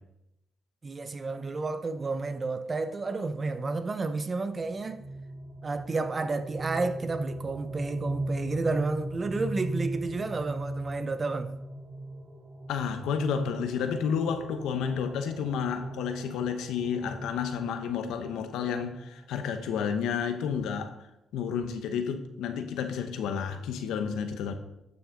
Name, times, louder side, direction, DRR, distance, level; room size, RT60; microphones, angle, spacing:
voice 1, 0.8-5.0 5.6-11.5, right 3 dB, 30° right, 0.8 m, -31 dB
sound 1, 4.6-19.3, right 1 dB, 85° right, 3.0 m, -39 dB
voice 2, 12.7-21.0 21.3-24.6, left 7 dB, 85° left, 0.9 m, -31 dB
11.5 x 6.3 x 3.8 m
cardioid pair, 90°, 0 cm